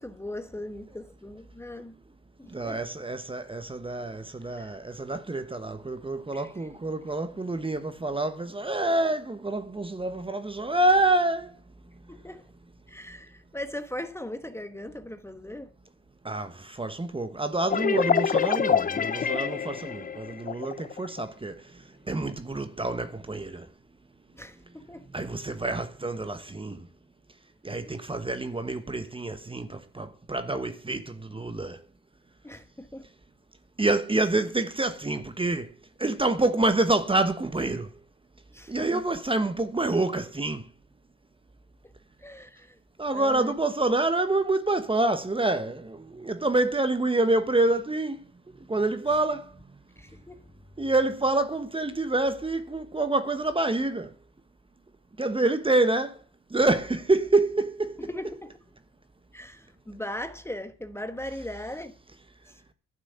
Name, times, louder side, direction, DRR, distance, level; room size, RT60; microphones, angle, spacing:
voice 1, 0.0-1.9 2.4-2.8 4.6-4.7 6.3-6.7 12.1-12.4 12.9-15.7 24.3-25.1 32.4-33.1 38.5-39.0 41.8-41.9 42.2-42.8 43.1-43.5 50.0-50.5 58.0-58.6 59.3-61.9 62.5-62.6, left 1 dB, 10° left, 1.2 m, -39 dB
voice 2, 2.5-11.6 16.2-23.7 25.1-26.9 27.6-31.8 33.8-35.7 36.0-37.9 38.7-40.6 43.0-48.2 48.7-49.5 50.8-54.1 55.2-56.2 56.5-58.1, right 2 dB, 15° right, 1.2 m, -27 dB
sound 1, 17.7-21.2, left 7 dB, 30° left, 0.6 m, -26 dB
11.5 x 6.2 x 9.4 m
cardioid pair, 90°, 30 cm